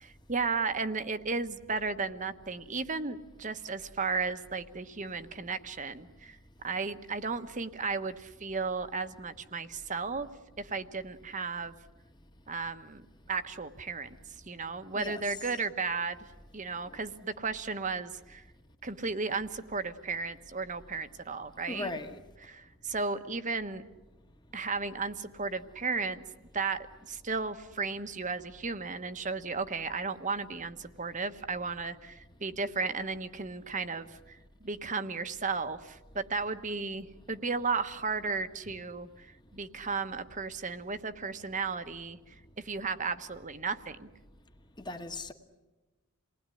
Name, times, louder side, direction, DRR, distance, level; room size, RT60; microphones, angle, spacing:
voice 1, 0.0-6.4 6.6-10.3 10.6-11.7 12.5-13.0 13.3-14.1 14.5-16.2 16.5-18.4 18.8-21.9 22.4-23.8 24.5-26.2 26.5-39.3 39.5-44.1, right 4 dB, 35° right, 1.2 m, -34 dB
voice 2, 14.9-15.4 21.7-22.2 44.8-45.3, left 2 dB, 20° left, 1.6 m, -38 dB
28.5 x 20.0 x 9.9 m
head